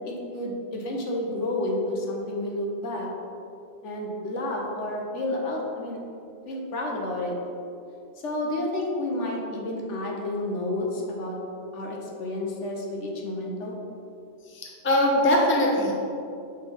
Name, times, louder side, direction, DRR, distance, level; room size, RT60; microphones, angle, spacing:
voice 1, 0.0-3.1 3.8-6.0 6.5-7.4 8.2-11.4 11.7-13.8, left 1 dB, 65° left, -1 dB, 1.1 m, -30 dB
voice 2, 14.5-15.9, left 1 dB, 15° left, -2 dB, 0.5 m, -22 dB
6.0 x 3.8 x 4.3 m, 2.6 s
omnidirectional pair, 1.4 m